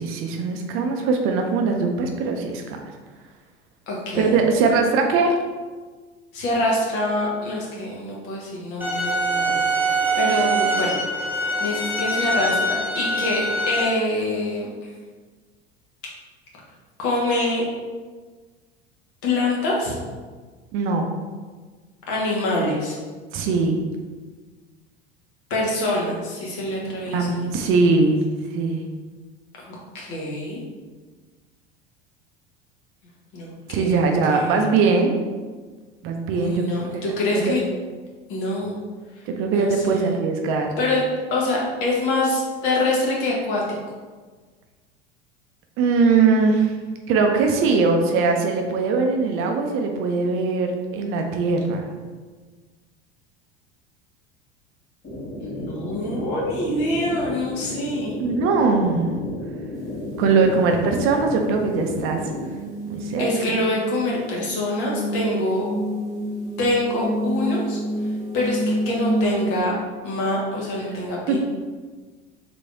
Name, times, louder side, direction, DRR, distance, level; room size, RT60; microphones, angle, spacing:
voice 1, 0.0-2.8 4.1-5.3 20.7-21.1 23.3-23.8 27.1-28.2 28.5-28.9 33.7-35.1 36.0-37.0 37.3-37.6 39.3-40.7 45.8-46.7 47.1-51.9 58.2-59.2 60.2-62.2 62.9-63.3 71.3-71.4, right 4 dB, 40° right, 3 dB, 0.5 m, -21 dB
voice 2, 3.9-4.3 6.3-9.8 10.2-10.9 11.6-14.9 17.0-17.6 19.2-19.9 22.1-23.0 25.5-27.7 29.7-30.6 33.3-34.7 36.3-37.6 38.3-38.8 39.5-40.2 40.8-41.0 41.3-43.6 55.5-58.2 63.2-65.7 66.6-69.7 70.0-71.4, left 2 dB, 55° left, -3 dB, 1.2 m, -25 dB
sound 1, 8.8-13.8, right 2 dB, 5° right, 0.7 m, -23 dB
sound 2, 55.0-62.5, left 1 dB, 30° left, 1.3 m, -33 dB
sound 3, 59.7-69.6, right 1 dB, 25° right, 1.3 m, -29 dB
3.4 x 3.1 x 2.6 m, 1.4 s
figure-of-eight pair, 75°, 32 cm